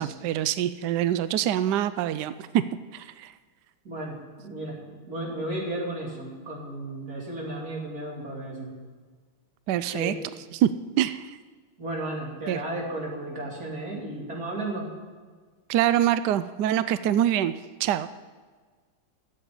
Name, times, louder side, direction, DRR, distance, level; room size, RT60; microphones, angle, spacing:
voice 1, 0.0-2.6 2.9-3.3 9.7-10.1 10.5-10.7 11.0-11.4 12.5-12.6 15.7-17.5 17.8-18.1, right 11 dB, 80° right, 14 dB, 0.9 m, -25 dB
voice 2, 3.9-4.8 5.1-8.8 9.9-10.2 11.8-14.9, right 1 dB, 45° right, -2 dB, 3.6 m, -34 dB
14.0 x 7.8 x 9.5 m, 1.5 s
omnidirectional pair, 2.3 m